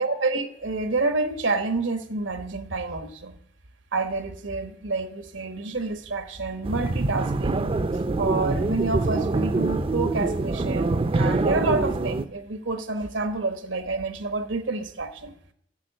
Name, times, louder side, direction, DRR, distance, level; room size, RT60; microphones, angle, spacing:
voice 1, 0.0-3.4 3.9-7.7 8.2-15.3, right 3 dB, 80° right, 1.2 m, -28 dB
sound 1, 6.6-12.3, right 2 dB, 30° right, 0.4 m, -25 dB
10.5 x 7.2 x 7.9 m
head